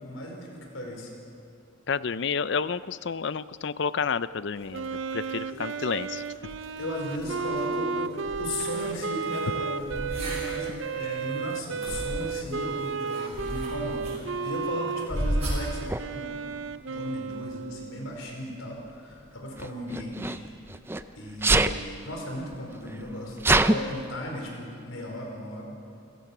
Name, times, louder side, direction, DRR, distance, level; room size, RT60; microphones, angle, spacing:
voice 1, 0.0-1.1 5.5-5.6 6.8-16.5 16.9-20.4 21.1-25.8, equal, 85° left, 1 dB, 4.9 m, -36 dB
voice 2, 1.9-4.9 5.1-6.2, left 5 dB, 60° left, 16 dB, 0.5 m, -30 dB
sound 1, 4.6-15.9, equal, 30° right, 6.5 m, -37 dB
Wind instrument woodwind instrument, 4.7-18.1, right 5 dB, 65° right, 0.6 m, -33 dB
Sneeze, 15.9-16.0 17.2-17.5 19.6-21.0 21.4-21.8 22.5-22.6 22.8-23.8, right 2 dB, 10° right, 0.5 m, -24 dB
28.5 x 16.0 x 6.1 m, 2.6 s
head